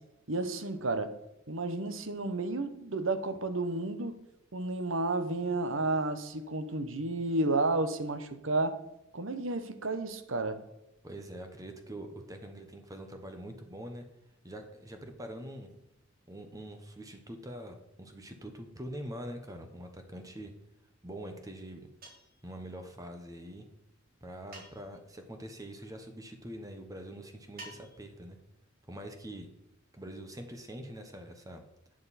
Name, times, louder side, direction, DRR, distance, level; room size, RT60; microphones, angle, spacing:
voice 1, 0.3-1.1 1.5-4.1 4.5-8.8 9.1-10.6, right 2 dB, 80° right, 10 dB, 1.1 m, -31 dB
voice 2, 11.0-14.0 14.4-15.8 16.3-20.5 21.0-21.9 22.4-23.6 24.2-28.4 28.9-29.5 29.9-31.6, right 1 dB, 20° right, 5 dB, 1.1 m, -44 dB
sound 1, 22.0-22.4 24.5-25.1 27.6-28.2, right 2 dB, 50° right, 3.5 m, -49 dB
11.5 x 7.6 x 4.2 m, 0.88 s
head